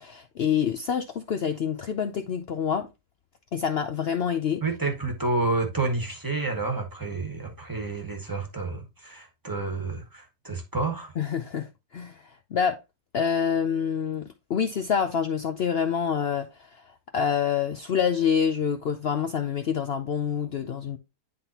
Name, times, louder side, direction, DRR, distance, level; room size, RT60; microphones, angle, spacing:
voice 1, 0.0-2.9 3.5-4.6 11.2-12.8 13.1-21.0, left 7 dB, 75° left, 0.5 m, -27 dB
voice 2, 4.6-11.1, right 3 dB, 15° right, 1.3 m, -29 dB
10.5 x 3.7 x 2.8 m
omnidirectional pair, 1.7 m